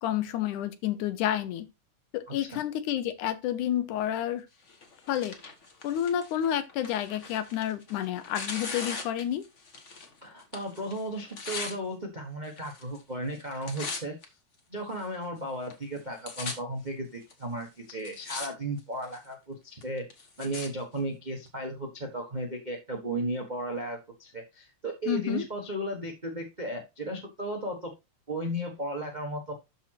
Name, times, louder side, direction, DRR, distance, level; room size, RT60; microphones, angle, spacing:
voice 1, 0.0-1.7 2.1-4.4 5.1-5.4 5.8-9.4 25.1-25.5, left 11 dB, 85° left, 2.4 m, -30 dB
Tearing, 4.7-10.1 10.4-11.8 12.5-13.0 13.3-14.2 14.9-15.0 15.7-15.8 16.0-16.5 17.3-17.4 17.9-18.5 18.8-19.3 19.8-20.7 21.5-21.6, left 4 dB, 45° left, 0.9 m, -39 dB
voice 2, 10.2-14.1 14.7-27.9 28.3-29.5, right 1 dB, 85° right, 0.4 m, -35 dB
12.5 x 4.2 x 2.9 m
omnidirectional pair, 3.4 m